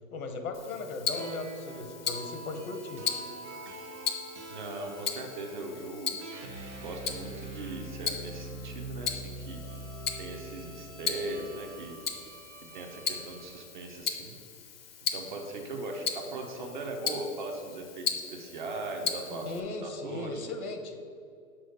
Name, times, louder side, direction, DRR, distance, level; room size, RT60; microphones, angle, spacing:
voice 1, 0.1-3.0 19.3-21.0, left 3 dB, 85° left, 6 dB, 1.3 m, -37 dB
Tick-tock, 0.5-19.6, left 7 dB, 45° left, 0.7 m, -38 dB
sound 1, 1.1-13.6, right 2 dB, 55° right, 1.2 m, -44 dB
voice 2, 4.5-6.1 6.8-9.6 10.2-12.0 12.7-14.4 15.1-20.5, right 2 dB, 35° right, 3 dB, 0.8 m, -39 dB
6.3 x 4.7 x 6.5 m, 2.4 s
hypercardioid pair, 170°, 42 cm